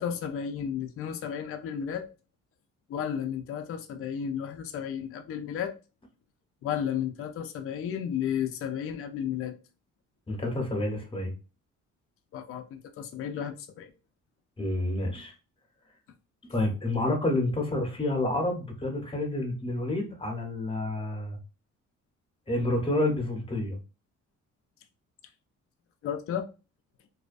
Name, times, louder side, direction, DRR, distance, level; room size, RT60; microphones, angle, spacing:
voice 1, 0.0-2.1 2.9-5.7 6.6-9.5 12.3-13.9 26.0-26.5, left 8 dB, 50° left, 0.4 m, -33 dB
voice 2, 10.3-11.3 14.6-15.3 16.5-21.4 22.5-23.8, left 1 dB, 15° left, 0.8 m, -29 dB
2.4 x 2.2 x 2.4 m
cardioid pair, 90°, 30 cm